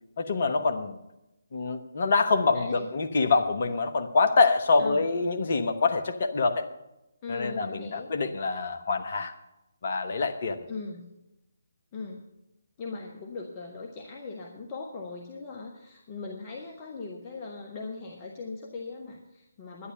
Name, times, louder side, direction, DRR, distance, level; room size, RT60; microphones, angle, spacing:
voice 1, 0.2-1.0 1.5-6.7 7.3-9.3 9.8-10.7, left 4 dB, 45° left, 1.1 m, -25 dB
voice 2, 2.5-3.0 4.8-5.0 7.2-8.1 10.7-11.1 11.9-12.2 12.8-19.9, left 4 dB, 25° left, 1.2 m, -39 dB
11.5 x 9.7 x 6.9 m
figure-of-eight pair, 145°, 0 cm